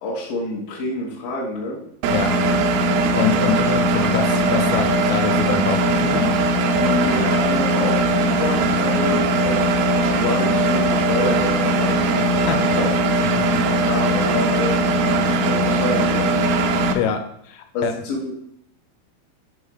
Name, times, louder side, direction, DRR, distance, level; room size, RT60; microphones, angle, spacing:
voice 1, 0.0-1.8 6.8-12.0 12.5-12.9 13.9-16.3 17.7-18.3, left 2 dB, 60° left, -5 dB, 2.6 m, -28 dB
Engine, 2.0-16.9, right 1 dB, 80° right, 2.5 m, -19 dB
voice 2, 3.2-6.3 12.4-12.6 16.9-17.2 17.5-18.0, left 7 dB, 80° left, 7 dB, 3.4 m, -24 dB
7.1 x 5.4 x 6.4 m, 0.73 s
omnidirectional pair, 5.7 m